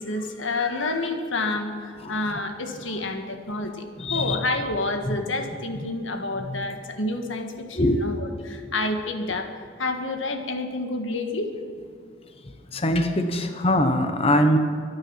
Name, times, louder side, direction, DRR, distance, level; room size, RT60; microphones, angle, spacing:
voice 1, 0.0-11.6, left 2 dB, 85° left, 1.6 m, -29 dB
voice 2, 2.0-2.4 4.0-4.4 5.0-5.2 6.4-6.7 7.7-8.1 12.7-14.6, left 1 dB, 30° left, 1.0 m, -23 dB
24.0 x 8.8 x 5.8 m
head